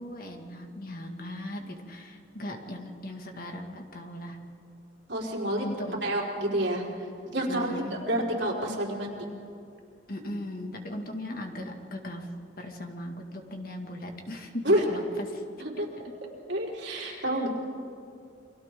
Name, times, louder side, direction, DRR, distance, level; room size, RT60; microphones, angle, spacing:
voice 1, 0.0-4.4 5.6-6.0 7.5-8.1 10.1-12.3 12.6-15.4 16.9-17.3, left 1 dB, 50° left, 3 dB, 2.1 m, -38 dB
voice 2, 5.1-5.7 6.0-6.8 7.3-7.7 8.1-9.2 14.6-14.9 15.6-15.9 16.5-17.5, right 1 dB, 70° right, -3 dB, 4.5 m, -28 dB
30.0 x 23.5 x 3.8 m, 2.4 s
head